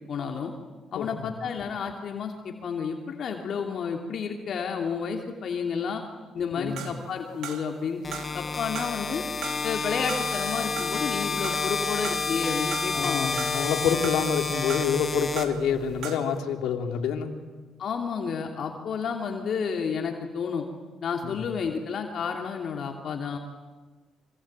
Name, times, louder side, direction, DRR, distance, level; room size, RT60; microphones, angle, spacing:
voice 1, 0.1-0.5 0.9-6.0 6.3-8.0 8.3-9.2 9.6-13.3 17.8-20.6 21.0-23.4, left 6 dB, 60° left, 3 dB, 2.8 m, -31 dB
voice 2, 0.9-1.3 6.6-6.9 12.9-17.4 21.2-21.4, left 7 dB, 85° left, 5 dB, 3.0 m, -27 dB
sound 1, 6.8-7.8 8.1-9.1 9.4-12.4 12.7-13.7 14.0-15.7 16.0-16.4, right 8 dB, 80° right, 2.5 m, -39 dB
sound 2, 8.0-16.1, left 4 dB, 30° left, 1.9 m, -30 dB
26.5 x 25.5 x 8.9 m, 1.3 s
cardioid pair, 90°, 0 cm